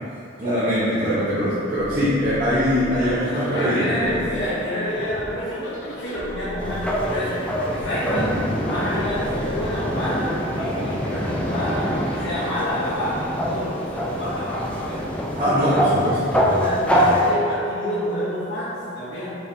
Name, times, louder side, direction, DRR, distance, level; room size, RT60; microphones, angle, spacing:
voice 1, 0.4-4.2 8.1-8.3 15.4-16.4, equal, 45° right, -14 dB, 1.0 m, -22 dB
sound 1, 1.7-12.6, left 1 dB, 90° left, 0.6 m, -37 dB
voice 2, 3.3-8.3 8.6-10.3 10.6-15.0 15.6-15.8 16.3-19.3, equal, 70° left, -12 dB, 1.0 m, -28 dB
sound 2, 6.6-17.3, equal, 5° left, 0.4 m, -25 dB
4.5 x 3.4 x 2.7 m, 2.7 s
head